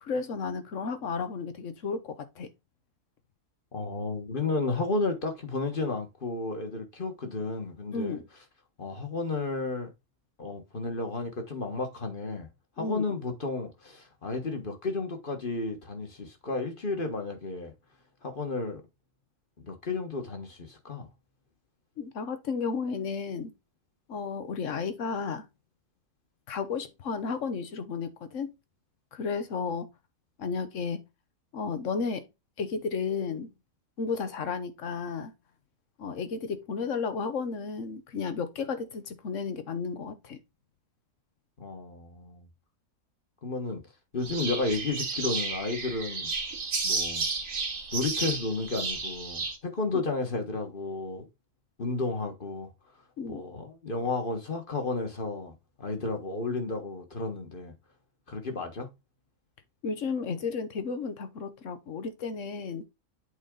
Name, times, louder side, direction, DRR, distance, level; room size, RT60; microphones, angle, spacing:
voice 1, 0.0-2.5 7.9-8.3 12.8-13.1 22.0-23.5 24.1-25.4 26.5-28.5 29.1-29.9 30.4-31.0 31.5-32.2 32.6-33.5 34.0-35.3 36.0-40.4 49.9-50.0 53.2-53.4 59.8-62.9, left 5 dB, 70° left, 1.4 m, -33 dB
voice 2, 3.7-8.2 8.8-9.9 10.4-12.5 12.8-17.7 18.2-18.8 19.6-21.1 41.6-42.5 43.4-43.8 44.1-46.3 46.8-47.3 47.9-51.3 51.8-52.7 53.3-57.7 58.3-58.9, left 3 dB, 40° left, 1.6 m, -32 dB
sound 1, 44.2-49.6, right 4 dB, 90° right, 2.0 m, -32 dB
8.2 x 4.2 x 3.8 m
omnidirectional pair, 1.3 m